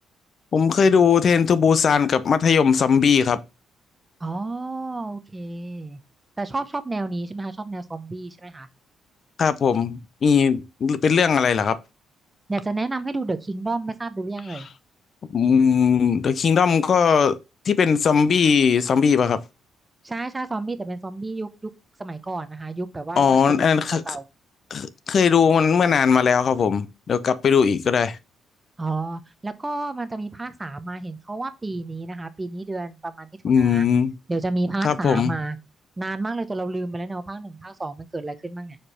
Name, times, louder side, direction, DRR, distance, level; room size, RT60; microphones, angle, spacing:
voice 1, 0.5-3.4 9.4-11.8 15.3-17.4 17.7-19.4 23.2-24.2 24.7-28.2 33.4-34.1 34.8-35.3, left 6 dB, 50° left, 0.6 m, -19 dB
voice 2, 4.2-6.0 6.4-8.7 12.5-14.7 20.0-21.7 22.0-23.7 24.1-24.2 28.8-33.3 33.6-33.9 34.3-35.6 36.0-38.8, right 2 dB, 20° right, 0.8 m, -30 dB
4.9 x 4.5 x 4.2 m
cardioid pair, 90°, 0 cm